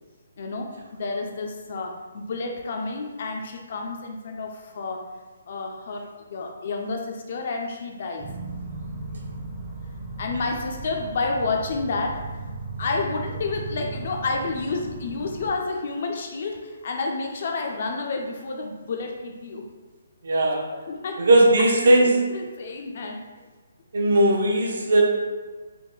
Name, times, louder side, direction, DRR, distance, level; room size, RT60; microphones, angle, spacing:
voice 1, 0.4-5.1 5.5-8.3 10.2-12.2 12.8-19.6 20.9-21.3 21.8-21.9 22.3-23.2, left 3 dB, 45° left, 2 dB, 0.4 m, -30 dB
sound 1, 8.2-15.5, right 3 dB, 10° right, 0.5 m, -36 dB
voice 2, 20.2-20.7 21.2-22.3 23.9-25.0, right 1 dB, 65° right, -2 dB, 0.7 m, -18 dB
3.4 x 2.2 x 3.1 m, 1.3 s
hypercardioid pair, 175°, 0 cm